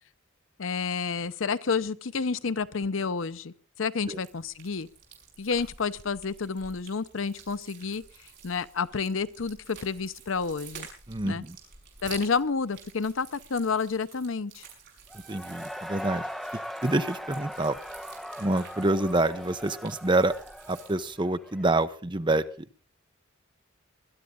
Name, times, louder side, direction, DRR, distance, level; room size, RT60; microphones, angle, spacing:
voice 1, 0.6-4.9 5.4-8.0 8.4-10.9 11.2-11.4 12.0-14.7, left 5 dB, 75° left, 15 dB, 0.7 m, -30 dB
sound 1, 4.0-21.1, right 6 dB, 55° right, 6.1 m, -50 dB
voice 2, 11.1-11.6 15.3-16.2 16.8-17.8 18.4-20.3 20.7-22.7, right 2 dB, 25° right, 11 dB, 0.8 m, -27 dB
Cheering / Crowd, 15.1-21.8, equal, ahead, 1.4 m, -40 dB
21.0 x 12.0 x 3.8 m, 0.37 s
head